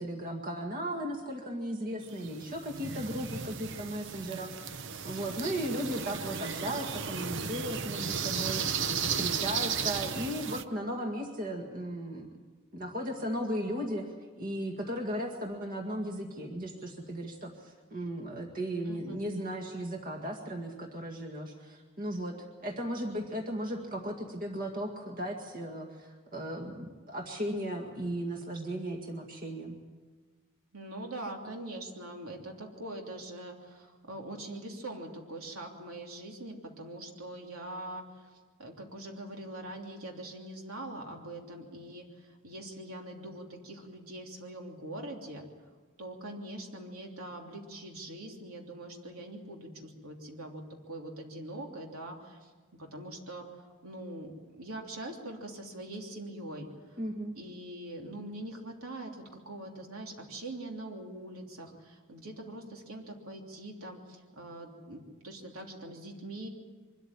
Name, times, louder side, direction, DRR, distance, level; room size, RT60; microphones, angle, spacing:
voice 1, 0.0-8.8 9.2-12.3 12.7-14.1 14.4-22.4 22.6-29.8 57.0-57.3, equal, 40° right, 2 dB, 2.0 m, -36 dB
sound 1, 2.1-10.6, right 6 dB, 55° right, 0.8 m, -35 dB
voice 2, 18.9-19.2 30.7-45.4 46.0-57.0 57.3-66.5, right 1 dB, 80° right, 1 dB, 3.2 m, -43 dB
24.0 x 13.5 x 9.8 m, 1.4 s
head